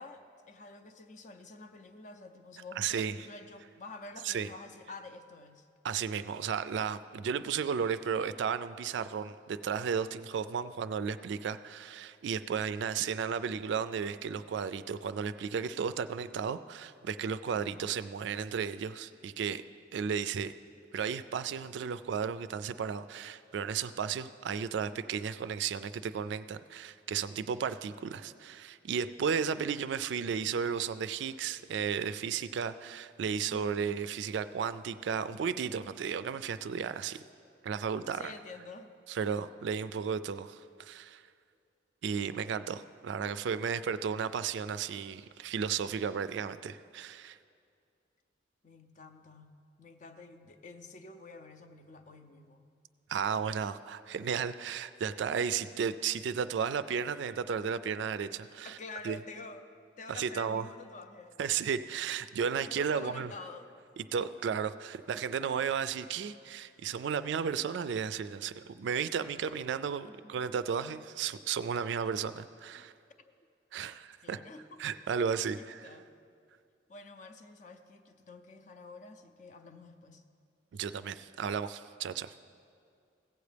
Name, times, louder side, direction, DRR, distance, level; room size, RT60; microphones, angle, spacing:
voice 1, 0.0-5.7 17.5-17.9 33.5-34.0 38.1-38.9 39.6-39.7 48.6-52.7 58.4-59.7 60.0-61.4 62.6-63.7 64.2-64.3 70.0-70.4 72.8-72.9 73.2-73.3 74.2-74.8 75.6-76.1 76.9-80.2, left 3 dB, 40° left, 8 dB, 0.5 m, -49 dB
voice 2, 2.8-3.1 4.2-4.5 5.8-19.6 19.9-20.5 20.9-37.2 37.6-38.3 39.1-41.2 42.0-47.4 53.1-58.8 59.0-59.2 60.1-60.7 61.4-63.3 64.0-72.9 73.7-74.4 74.8-75.9 80.7-82.3, right 7 dB, 65° right, 13 dB, 0.3 m, -34 dB
16.0 x 8.1 x 3.4 m, 2.3 s
head